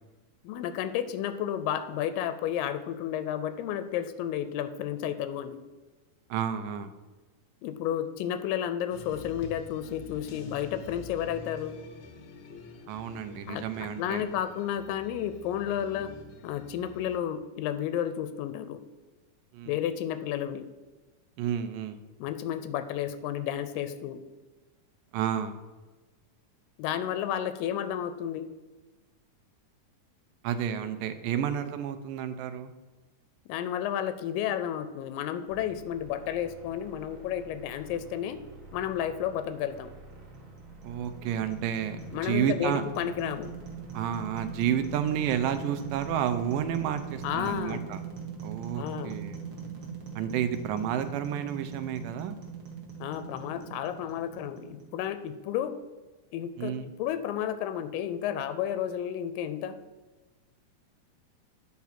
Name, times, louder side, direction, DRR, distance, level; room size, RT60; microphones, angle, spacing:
voice 1, 0.4-5.6 7.6-11.8 13.5-16.1 16.4-18.8 19.7-20.6 22.2-24.2 26.8-28.5 33.5-38.4 38.7-39.9 42.1-43.5 47.2-47.9 48.8-49.1 53.0-55.8 56.3-59.8, left 10 dB, 90° left, 11 dB, 2.3 m, -32 dB
voice 2, 6.3-6.9 12.9-14.2 19.5-19.7 21.4-22.0 25.1-25.6 30.4-32.7 40.8-42.8 43.9-48.0 48.4-49.4 50.2-52.4 56.6-56.9, right 9 dB, 85° right, 9 dB, 2.3 m, -31 dB
sound 1, 8.9-17.2, left 4 dB, 70° left, 1.5 m, -47 dB
sound 2, 35.5-47.8, right 2 dB, 35° right, 1.3 m, -50 dB
sound 3, 40.1-55.3, right 7 dB, 60° right, 1.0 m, -42 dB
9.4 x 4.8 x 5.7 m, 1.2 s
omnidirectional pair, 3.9 m